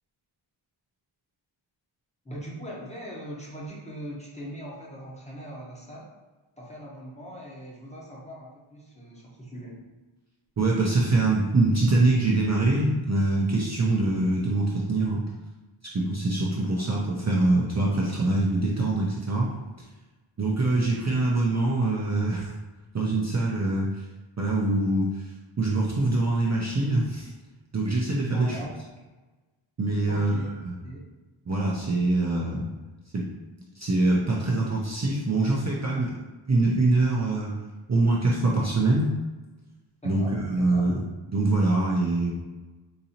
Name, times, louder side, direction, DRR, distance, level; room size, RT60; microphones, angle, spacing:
voice 1, 2.2-6.1 6.6-9.8 28.3-28.8 30.1-31.1 40.0-40.9, right 1 dB, 15° left, -5 dB, 0.8 m, -40 dB
voice 2, 10.6-15.2 15.9-19.5 20.4-22.5 22.9-24.0 24.4-25.3 25.6-27.3 27.7-28.6 29.8-30.7 31.5-32.7 33.1-33.2 33.8-36.1 36.5-37.5 37.9-39.1 40.0-40.9 41.3-42.3, right 2 dB, 35° right, -4 dB, 0.5 m, -24 dB
3.9 x 2.7 x 2.8 m, 1.2 s
wide cardioid pair, 115°, 50 cm